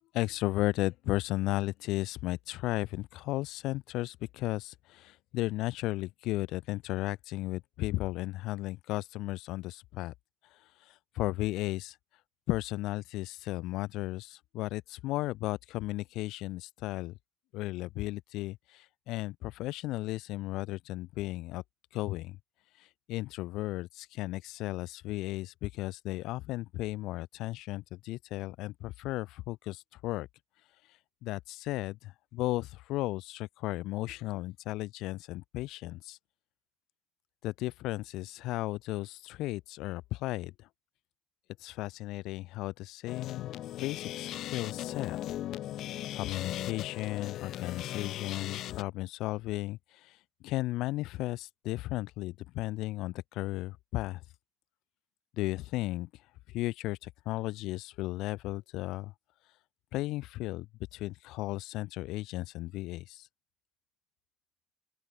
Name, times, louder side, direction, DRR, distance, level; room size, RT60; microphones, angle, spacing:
voice 1, 0.1-10.1 10.4-12.0 12.5-17.1 17.5-21.6 21.9-22.4 22.7-30.3 30.8-36.2 37.4-40.7 41.6-43.5 43.8-45.2 46.1-54.2 55.4-59.1 59.9-63.3, left 18 dB, 85° left, 1.1 m, -35 dB
sound 1, 43.1-48.8, left 13 dB, 55° left, 3.3 m, -38 dB
open air
cardioid pair, 175°, 0 cm